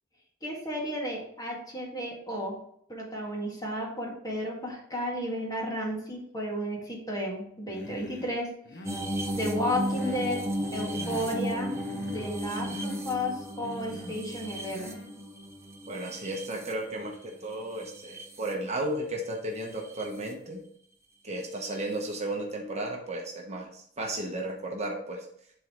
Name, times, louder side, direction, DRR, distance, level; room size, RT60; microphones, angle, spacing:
voice 1, 0.4-2.6 2.9-8.5 9.3-11.7 12.1-15.0, equal, 20° left, -2 dB, 1.9 m, -33 dB
Human voice, 7.7-8.4 8.6-9.1 9.6-10.3 10.6-11.4 11.6-12.4 12.6-13.0 13.6-14.2 14.7-15.1, left 2 dB, 60° left, 0.9 m, -44 dB
sound 1, 8.8-17.2 17.7-18.5 19.7-20.0 21.8-21.9, equal, 15° right, 1.0 m, -35 dB
voice 2, 15.9-20.6 21.2-25.3, right 1 dB, 35° right, 0 dB, 1.1 m, -34 dB
11.5 x 3.9 x 3.1 m, 0.69 s
head